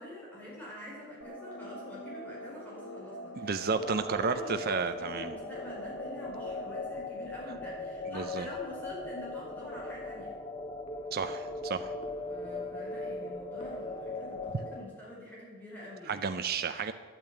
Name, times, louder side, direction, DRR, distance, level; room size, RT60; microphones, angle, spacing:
voice 1, 0.0-10.4 12.3-16.3, left 1 dB, 10° left, -6 dB, 5.1 m, -46 dB
sound 1, 1.2-6.8, right 1 dB, 80° left, 1.6 m, -45 dB
voice 2, 3.3-5.3 8.1-8.5 11.1-11.9 16.1-16.9, right 5 dB, 45° right, 9 dB, 0.5 m, -32 dB
sound 2, 3.7-14.8, left 2 dB, 25° left, 0.8 m, -39 dB
10.5 x 9.0 x 9.1 m, 1.5 s
head